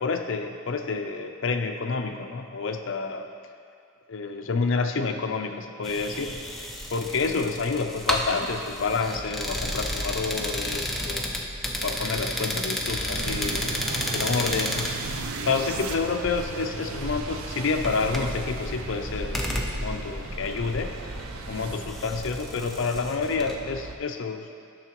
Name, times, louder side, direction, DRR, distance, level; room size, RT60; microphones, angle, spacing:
voice 1, 0.0-3.3 4.1-6.4 6.9-11.4 11.8-13.9 14.1-14.9 15.5-20.9 21.5-24.5, left 4 dB, 60° left, 6 dB, 0.5 m, -29 dB
sound 1, 5.8-23.5, left 1 dB, ahead, 0.4 m, -32 dB
sound 2, 13.1-24.0, right 3 dB, 80° right, 0.5 m, -37 dB
10.5 x 6.4 x 3.0 m, 2.3 s
head